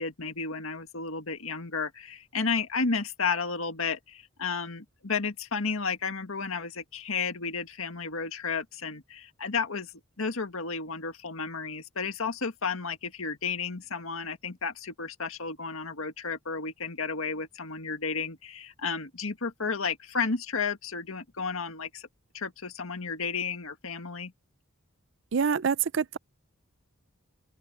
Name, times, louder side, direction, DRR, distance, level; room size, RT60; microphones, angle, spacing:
voice 1, 0.0-22.1 22.3-24.3, left 5 dB, 75° left, 1.7 m, -32 dB
voice 2, 25.3-26.2, right 6 dB, 60° right, 0.5 m, -26 dB
open air
head